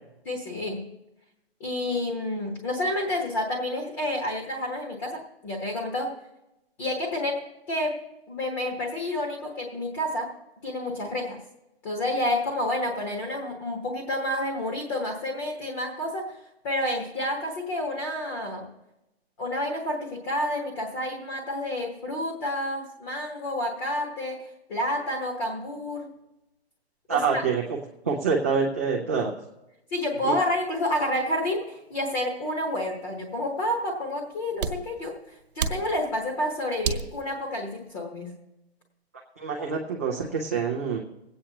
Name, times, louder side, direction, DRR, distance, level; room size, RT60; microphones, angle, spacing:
voice 1, 0.2-0.9 1.6-6.1 6.8-7.4 7.7-8.0 8.3-10.3 10.6-11.4 11.8-16.4 16.6-18.7 19.4-26.1 27.1-27.4 29.9-35.2 35.5-38.3, left 1 dB, 20° left, 0 dB, 1.2 m, -29 dB
voice 2, 27.1-27.8 28.0-29.3 30.2-30.3 39.4-41.0, right 5 dB, 15° right, -5 dB, 0.4 m, -26 dB
sound 1, 30.2-37.9, right 5 dB, 55° right, 1.3 m, -36 dB
25.5 x 8.7 x 2.8 m, 0.94 s
hypercardioid pair, 165°, 32 cm